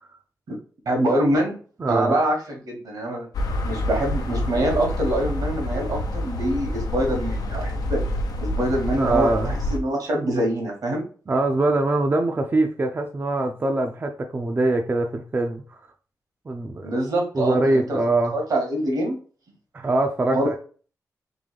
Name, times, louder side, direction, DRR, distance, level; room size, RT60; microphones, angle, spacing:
voice 1, 0.9-1.5 1.9-3.3 3.6-8.0 8.4-11.0 16.8-18.0 18.3-19.2 20.3-20.6, right 1 dB, 80° right, 1.8 m, -24 dB
voice 2, 1.8-2.2 9.0-9.5 11.3-15.8 16.5-16.9 17.3-18.3 19.7-20.6, right 2 dB, 30° right, 0.5 m, -23 dB
sound 1, 3.3-9.8, left 1 dB, 80° left, 0.7 m, -27 dB
3.8 x 3.2 x 3.4 m
wide cardioid pair, 105°, 6 cm